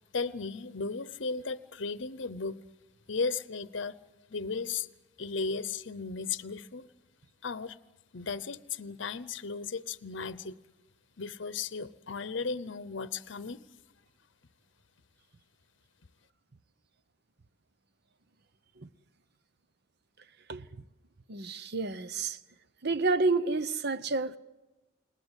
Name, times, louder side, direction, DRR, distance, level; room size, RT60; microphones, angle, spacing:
voice 1, 0.1-2.6 3.1-4.0 4.3-4.9 5.2-6.9 7.4-7.8 8.1-10.6 11.2-13.6, left 4 dB, 65° left, 0.8 m, -35 dB
voice 2, 21.3-22.4 22.8-24.4, right 3 dB, 55° right, 0.8 m, -29 dB
29.5 x 19.5 x 8.2 m
head